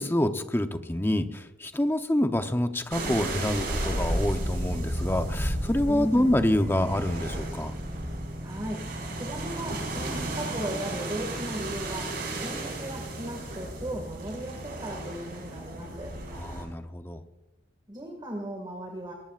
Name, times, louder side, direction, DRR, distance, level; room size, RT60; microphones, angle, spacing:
voice 1, 0.0-7.7 16.3-17.2, left 1 dB, 10° left, 7 dB, 0.8 m, -27 dB
sound 1, 2.9-16.6, right 1 dB, 55° right, 5.5 m, -33 dB
voice 2, 5.9-6.4 8.4-8.8 9.1-16.2 17.9-19.1, right 1 dB, 25° right, 1 dB, 2.1 m, -36 dB
22.5 x 19.0 x 2.5 m, 1.1 s
head